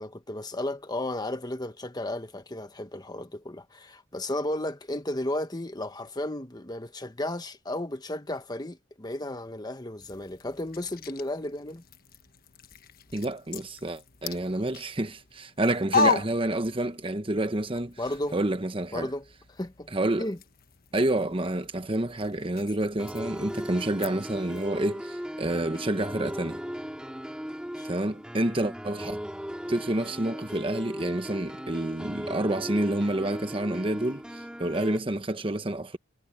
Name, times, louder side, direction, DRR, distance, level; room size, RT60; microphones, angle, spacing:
voice 1, 0.0-11.8 18.0-18.4 18.9-19.9 20.2-20.4 27.7-27.9, left 1 dB, 20° left, 1.3 m, -34 dB
sound 1, 10.0-17.2 17.5-24.7, left 4 dB, 50° left, 1.3 m, -36 dB
voice 2, 13.1-18.0 18.3-19.1 19.9-20.3 20.9-26.6 27.8-29.2 29.7-36.0, right 1 dB, 25° right, 1.0 m, -29 dB
sound 2, 23.0-35.0, equal, 5° right, 5.0 m, -37 dB
head